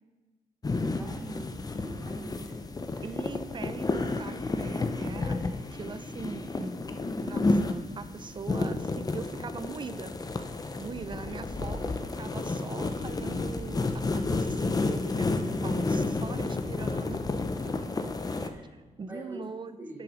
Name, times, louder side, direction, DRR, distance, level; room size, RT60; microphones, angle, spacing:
sound 1, 0.6-18.5, left 3 dB, 25° left, 0.5 m, -31 dB
voice 1, 0.7-1.5 1.8-2.5 2.9-3.1 18.5-18.7 19.1-19.4 19.8-20.0, right 1 dB, 15° right, -5 dB, 2.7 m, -43 dB
voice 2, 3.0-5.4 5.7-6.8 7.2-10.1 10.8-17.2 17.6-17.7 18.0-18.1 18.4-20.0, right 5 dB, 35° right, 12 dB, 0.5 m, -41 dB
6.6 x 6.1 x 5.0 m, 1.2 s
cardioid pair, 95°, 14 cm